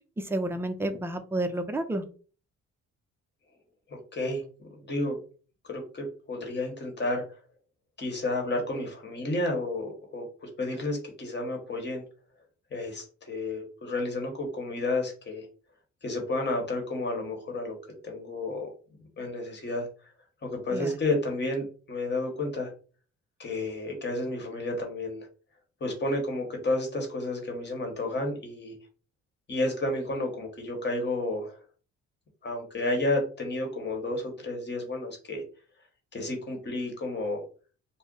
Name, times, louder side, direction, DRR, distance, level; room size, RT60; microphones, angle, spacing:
voice 1, 0.2-2.0 20.7-20.9, right 1 dB, 10° right, 7 dB, 0.4 m, -30 dB
voice 2, 3.9-5.2 5.6-7.2 8.0-12.0 12.7-15.5 16.0-17.8 18.0-18.7 19.2-19.9 20.4-22.7 23.4-25.3 25.8-28.7 29.5-31.6 32.4-35.4 36.1-37.4, left 2 dB, 35° left, 3 dB, 1.2 m, -31 dB
2.5 x 2.1 x 3.8 m, 0.38 s
cardioid pair, 90°, 30 cm